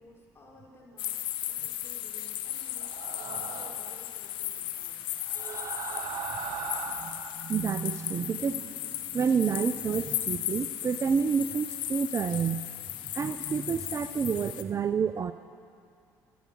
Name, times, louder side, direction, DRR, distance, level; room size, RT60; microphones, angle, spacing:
voice 1, 0.0-5.0, left 1 dB, 30° left, -4 dB, 4.8 m, -55 dB
sound 1, 1.0-14.6, left 13 dB, 70° left, 0.8 m, -36 dB
sound 2, 2.8-4.0 5.2-7.4, right 7 dB, 75° right, 1.0 m, -38 dB
voice 2, 5.4-6.1 7.0-12.6 13.0-15.3, right 6 dB, 35° right, 11 dB, 0.5 m, -29 dB
13.0 x 11.0 x 7.6 m, 2.4 s
supercardioid pair, 70°, 9 cm